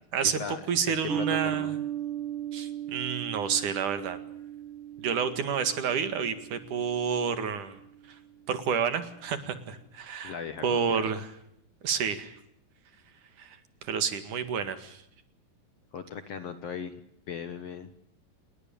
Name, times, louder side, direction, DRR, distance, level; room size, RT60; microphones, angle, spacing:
voice 1, 0.1-1.8 2.5-4.2 5.0-7.8 8.5-10.4 10.6-11.3 11.8-12.3 13.4-15.0, right 7 dB, 60° right, 10 dB, 3.3 m, -30 dB
voice 2, 0.9-1.7 10.2-11.0 15.9-17.0 17.3-17.9, left 6 dB, 55° left, 10 dB, 2.0 m, -38 dB
sound 1, 1.1-7.8, right 10 dB, 35° right, 8.9 m, -37 dB
28.5 x 21.0 x 7.0 m, 0.74 s
omnidirectional pair, 4.2 m